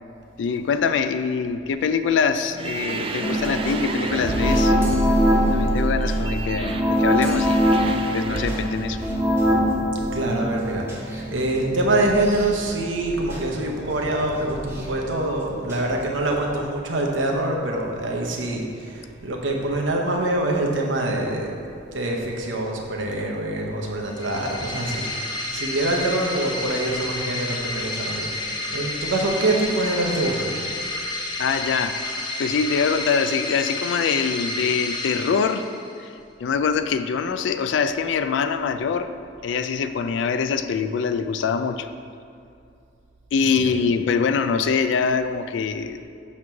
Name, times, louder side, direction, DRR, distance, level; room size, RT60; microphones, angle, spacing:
voice 1, 0.4-4.7 5.5-7.6 8.1-9.0 31.4-32.0 32.4-35.7 36.4-39.1 39.4-41.9 43.3-46.0, left 5 dB, 70° left, 10 dB, 0.3 m, -24 dB
sound 1, 2.5-9.0, right 2 dB, 30° right, 0.4 m, -28 dB
sound 2, 3.2-12.7 13.0-15.9 16.3-16.4, equal, 10° right, 1.0 m, -24 dB
voice 2, 10.1-21.6 21.9-25.1 25.5-30.5 43.4-43.8, right 2 dB, 80° right, -1 dB, 0.9 m, -25 dB
sound 3, 24.1-36.0, left 2 dB, 25° left, 0.7 m, -30 dB
7.2 x 3.1 x 5.7 m, 2.5 s
head